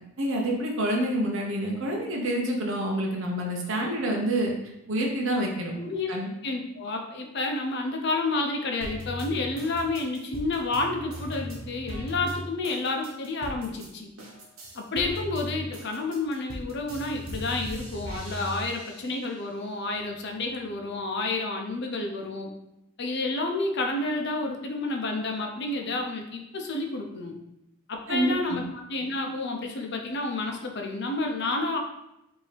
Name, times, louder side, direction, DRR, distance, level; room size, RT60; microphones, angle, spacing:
voice 1, 0.2-4.5 4.9-5.7 6.1-6.3 28.1-28.6, right 1 dB, 60° right, -1 dB, 0.7 m, -27 dB
voice 2, 5.8-6.1 6.4-14.1 14.7-22.5 23.0-27.3 27.9-28.6 28.9-31.8, left 2 dB, 50° left, 2 dB, 0.6 m, -30 dB
sound 1, 8.8-13.9 14.2-19.4 19.8-20.8, equal, 75° right, 1.1 m, -38 dB
5.2 x 2.7 x 3.3 m, 0.86 s
head